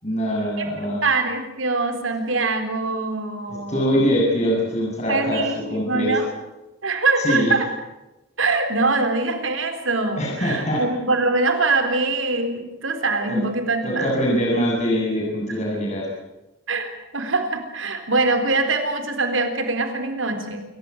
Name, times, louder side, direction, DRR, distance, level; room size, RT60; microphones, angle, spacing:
voice 1, 0.0-1.0 3.5-6.2 7.2-7.5 10.2-10.8 13.3-13.4 13.8-16.1, equal, 35° left, -2 dB, 7.8 m, -23 dB
voice 2, 1.0-4.0 5.1-6.3 6.8-7.7 8.4-14.1 15.5-15.6 16.7-20.6, right 3 dB, 80° right, 7 dB, 3.9 m, -23 dB
28.0 x 15.5 x 9.7 m, 1.0 s
head